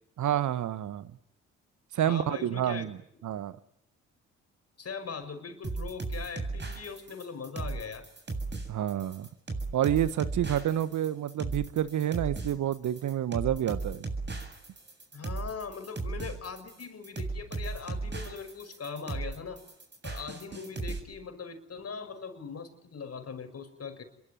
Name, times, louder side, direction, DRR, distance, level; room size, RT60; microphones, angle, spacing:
voice 1, 0.2-1.1 1.9-3.6 8.7-9.3 9.7-14.1, right 11 dB, 55° right, 15 dB, 1.3 m, -29 dB
voice 2, 2.0-2.9 4.8-8.1 15.1-19.6 20.0-24.0, left 5 dB, 45° left, 9 dB, 5.9 m, -40 dB
sound 1, 5.6-21.0, right 3 dB, 30° right, 7.7 m, -36 dB
28.0 x 22.5 x 9.5 m, 0.71 s
hypercardioid pair, 50°, 35 cm